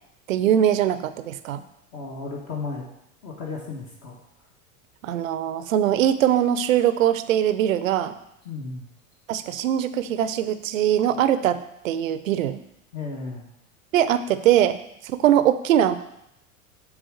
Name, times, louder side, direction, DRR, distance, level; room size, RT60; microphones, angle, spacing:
voice 1, 0.3-1.6 5.0-8.2 9.3-11.6 11.8-12.6 13.9-14.8 15.0-15.9, right 10 dB, 65° right, 12 dB, 0.7 m, -21 dB
voice 2, 1.9-2.9 3.2-4.2 8.4-8.9 12.9-13.5, left 4 dB, 40° left, -3 dB, 1.7 m, -34 dB
8.1 x 3.7 x 6.5 m, 0.79 s
figure-of-eight pair, 85°, 42 cm